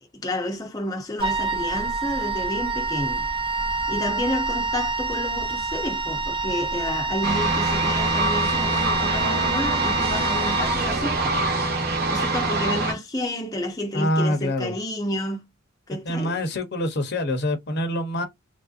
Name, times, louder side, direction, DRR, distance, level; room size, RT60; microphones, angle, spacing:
voice 1, 0.1-3.3 3.9-11.4 12.1-15.5 15.9-16.4, left 1 dB, 20° left, 0.6 m, -30 dB
Wind instrument woodwind instrument, 1.2-11.3, right 3 dB, 25° right, 0.5 m, -27 dB
sound 1, 7.2-12.9, right 2 dB, 50° right, 1.0 m, -24 dB
voice 2, 13.9-14.8 16.0-18.3, left 1 dB, 55° left, 0.8 m, -25 dB
3.2 x 2.5 x 2.4 m
head